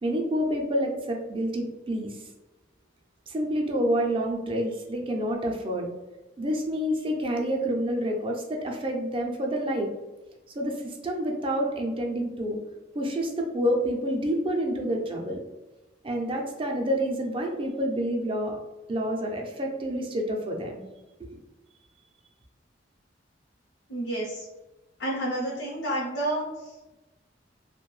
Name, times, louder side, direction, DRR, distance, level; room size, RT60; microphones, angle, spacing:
voice 1, 0.0-2.2 3.3-5.9 6.4-9.9 10.6-12.6 12.9-15.4 16.0-18.6 18.9-20.8 21.2-21.4, equal, 30° right, 1 dB, 0.4 m, -28 dB
voice 2, 23.9-24.5 25.0-26.9, right 1 dB, 90° left, -5 dB, 0.7 m, -30 dB
2.5 x 2.1 x 3.1 m, 1.1 s
head